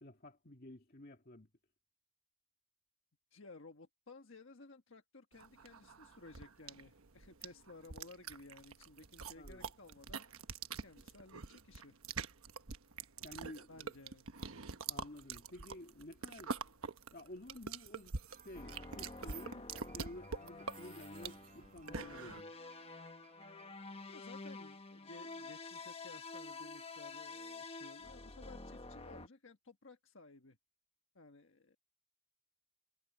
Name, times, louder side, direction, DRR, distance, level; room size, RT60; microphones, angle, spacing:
voice 1, 0.0-1.5 9.4-9.6 13.2-13.9 14.9-16.6 17.1-18.2 18.4-22.5, left 1 dB, 45° left, 2.1 m, -52 dB
voice 2, 3.3-10.3 10.8-12.0 13.7-14.3 24.1-30.6 31.1-31.8, left 3 dB, 65° left, 1.5 m, -56 dB
sound 1, 5.4-22.4, right 5 dB, 90° right, 1.1 m, -45 dB
sound 2, 18.3-24.9, right 5 dB, 35° right, 4.2 m, -65 dB
sound 3, 18.5-29.3, left 3 dB, 30° left, 1.3 m, -49 dB
head